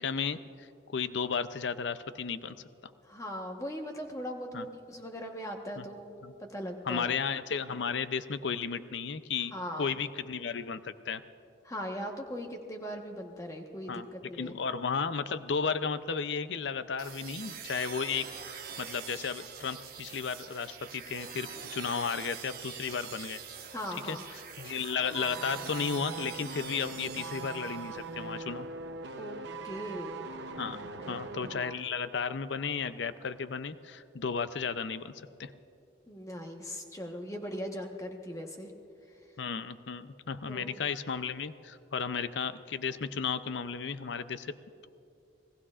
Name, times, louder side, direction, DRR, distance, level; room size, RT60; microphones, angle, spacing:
voice 1, 0.0-2.6 4.5-4.7 5.8-5.9 6.2-6.3 6.9-11.2 13.9-14.1 14.4-18.2 18.8-23.4 24.0-24.2 24.6-28.7 30.6-30.8 31.1-35.1 35.4-35.5 39.4-44.5, left 6 dB, 70° left, 12 dB, 0.5 m, -34 dB
voice 2, 3.0-6.1 6.4-7.1 9.5-10.0 11.6-14.6 23.7-24.2 29.1-29.4 29.6-30.2 30.8-31.3 36.1-38.7 40.5-40.8, equal, 15° left, 3 dB, 1.2 m, -39 dB
sound 1, 17.0-28.2, right 7 dB, 50° right, 1.4 m, -45 dB
sound 2, 25.1-31.8 32.1-32.2, right 4 dB, 70° right, 0.8 m, -41 dB
28.0 x 18.5 x 2.5 m, 2.6 s
head